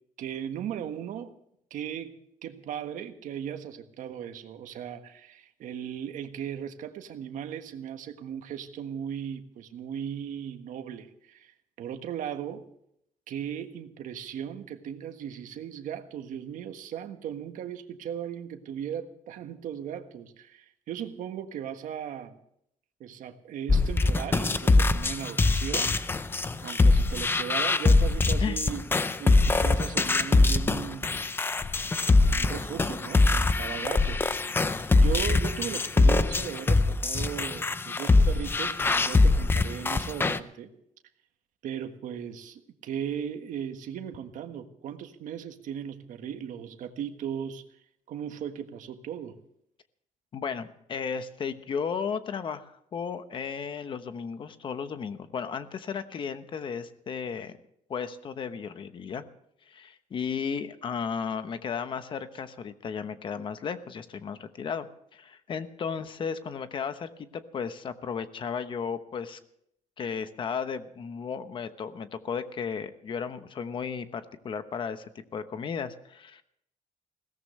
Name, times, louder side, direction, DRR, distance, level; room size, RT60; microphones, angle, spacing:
voice 1, 0.2-1.3 1.7-2.1 2.4-12.6 13.3-22.4 23.0-26.0 26.6-31.1 32.2-34.3 35.0-40.7 41.6-47.6 48.1-49.4, right 9 dB, 75° right, 7 dB, 1.6 m, -37 dB
sound 1, 23.7-40.4, left 3 dB, 15° left, 0.5 m, -23 dB
voice 2, 50.3-57.6 57.9-59.2 59.7-69.4 70.0-76.4, left 6 dB, 40° left, 10 dB, 1.1 m, -34 dB
21.0 x 17.5 x 3.3 m, 0.71 s
cardioid pair, 170°, 13 cm